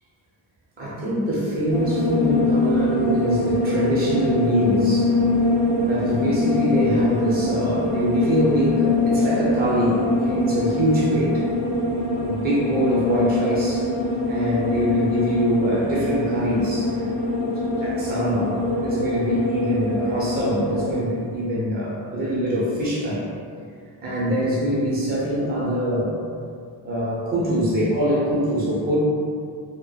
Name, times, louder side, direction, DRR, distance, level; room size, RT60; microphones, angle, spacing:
voice 1, 0.8-5.1 5.9-11.4 12.2-13.9 14.3-17.0 17.4-23.3 24.0-26.1 26.8-29.0, equal, 20° right, -7 dB, 0.4 m, -24 dB
sound 1, 1.7-21.0, left 2 dB, 75° right, 0.8 m, -23 dB
2.7 x 2.1 x 2.2 m, 2.2 s
wide cardioid pair, 170°, 48 cm